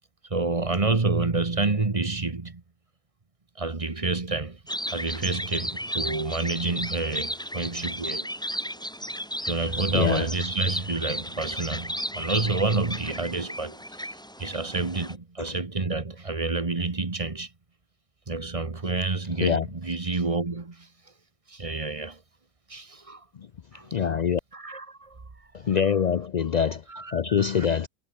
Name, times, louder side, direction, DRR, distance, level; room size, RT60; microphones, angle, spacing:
voice 1, 0.3-2.6 3.6-4.6 4.9-8.3 9.5-13.8 14.4-17.5 18.3-20.9 21.5-22.2 22.7-23.2 23.7-24.0 24.5-25.2 25.7-25.9 26.9-27.7, right 3 dB, 25° right, 1.3 m, -29 dB
sound 1, 4.7-15.1, equal, 5° left, 2.4 m, -34 dB
voice 2, 9.9-10.3 15.4-15.5 19.4-19.7 23.9-24.4 25.5-26.8 27.1-27.9, left 7 dB, 90° left, 0.3 m, -24 dB
omnidirectional pair, 1.5 m